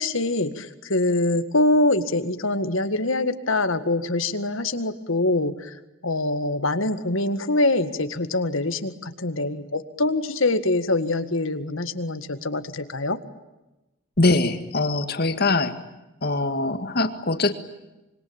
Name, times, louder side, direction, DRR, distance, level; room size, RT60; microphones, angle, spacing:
voice 1, 0.0-5.8 6.0-13.2, left 2 dB, 75° left, 10 dB, 1.9 m, -24 dB
voice 2, 14.2-15.7 16.2-17.5, left 2 dB, 50° left, 9 dB, 2.1 m, -22 dB
26.0 x 24.5 x 8.9 m, 1.0 s
head